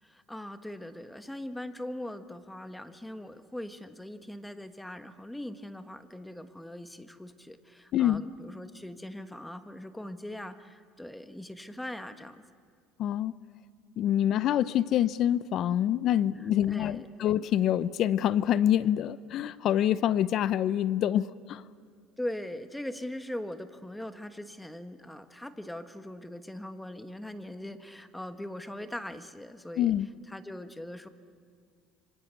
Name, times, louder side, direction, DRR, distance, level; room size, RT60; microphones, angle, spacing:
voice 1, 0.0-12.4 16.3-17.3 22.2-29.9 30.3-31.1, left 1 dB, 5° left, 10 dB, 1.4 m, -41 dB
voice 2, 13.0-13.3 14.0-21.6 29.8-30.1, left 11 dB, 55° left, 18 dB, 0.7 m, -26 dB
27.0 x 25.0 x 8.3 m, 2.1 s
cardioid pair, 120°, 0 cm